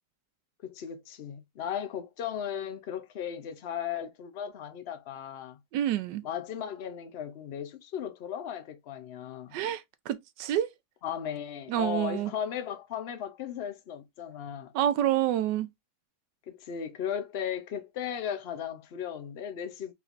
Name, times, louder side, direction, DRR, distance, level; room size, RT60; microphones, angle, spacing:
voice 1, 0.6-5.6 6.2-9.6 11.0-14.7 16.5-19.9, left 9 dB, 55° left, 0.7 m, -36 dB
voice 2, 5.7-6.2 9.5-10.7 11.7-12.3 14.7-15.7, right 11 dB, 85° right, 1.2 m, -28 dB
5.0 x 3.2 x 2.4 m
omnidirectional pair, 1.8 m